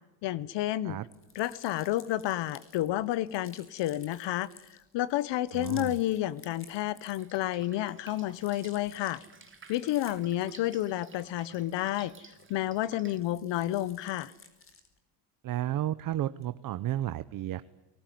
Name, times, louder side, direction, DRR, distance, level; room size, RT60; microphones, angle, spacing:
voice 1, 0.2-1.0 1.3-4.5 4.9-9.2 9.7-14.3, left 14 dB, 60° left, 19 dB, 1.0 m, -30 dB
sound 1, 1.0-7.5 7.9-12.8 13.1-15.0, left 4 dB, 25° left, 4.5 m, -56 dB
voice 2, 5.5-6.0 15.4-17.6, right 13 dB, 45° right, 14 dB, 0.9 m, -32 dB
Drip, 7.2-13.2, right 6 dB, 25° right, 2.5 m, -55 dB
29.5 x 20.5 x 9.3 m, 1.1 s
cardioid pair, 140°, 48 cm